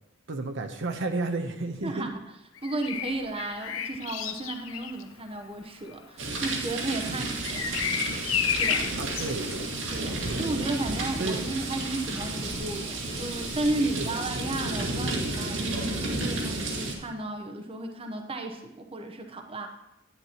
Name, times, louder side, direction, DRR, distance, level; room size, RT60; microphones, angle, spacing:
voice 1, 0.3-2.1 7.0-7.3 9.0-9.7 10.2-10.5 11.2-11.5 13.8-14.2, right 2 dB, 65° right, 5 dB, 0.8 m, -33 dB
voice 2, 1.8-2.2 2.6-7.7 8.6-8.9 9.9-19.7, right 2 dB, 30° right, 4 dB, 0.9 m, -34 dB
Bird vocalization bird call bird song, 2.5-14.4 16.1-16.3, left 8 dB, 80° left, 0.6 m, -35 dB
sound 1, 6.2-16.9, right 2 dB, 90° right, 2.2 m, -32 dB
11.0 x 9.6 x 2.9 m, 0.91 s
head